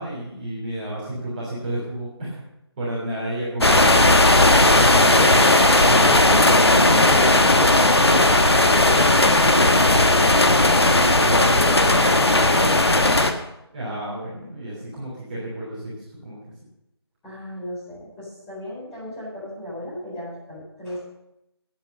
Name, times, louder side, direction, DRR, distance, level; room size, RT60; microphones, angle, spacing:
voice 1, 0.0-2.4 2.8-5.4 5.8-7.3 7.8-8.4 11.0-11.8 13.7-16.4, right 1 dB, 20° right, -9 dB, 3.2 m, -31 dB
sound 1, 3.6-13.3, left 2 dB, 70° left, 1.4 m, -16 dB
voice 2, 8.1-10.9 11.4-13.1 17.2-21.0, left 1 dB, 5° left, -12 dB, 4.4 m, -35 dB
12.0 x 9.1 x 5.3 m, 0.87 s
figure-of-eight pair, 160°, 14 cm